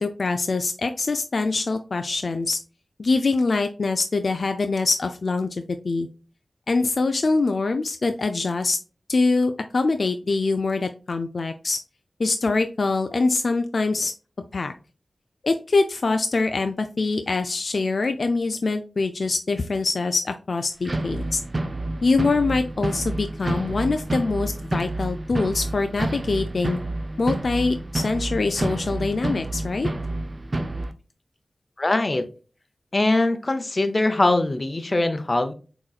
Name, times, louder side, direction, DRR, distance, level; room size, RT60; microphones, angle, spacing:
voice 1, 0.0-2.6 3.0-6.1 6.7-8.8 9.1-11.8 12.2-14.1 14.5-14.7 15.4-21.4 22.0-26.8 27.2-29.9, left 3 dB, 70° left, 7 dB, 0.4 m, -24 dB
sound 1, 20.8-30.9, right 2 dB, 40° right, 0.6 m, -29 dB
voice 2, 31.8-32.3 32.9-35.5, left 2 dB, 40° left, 9 dB, 0.7 m, -22 dB
6.1 x 3.0 x 2.3 m, 0.36 s
cardioid pair, 45°, 0 cm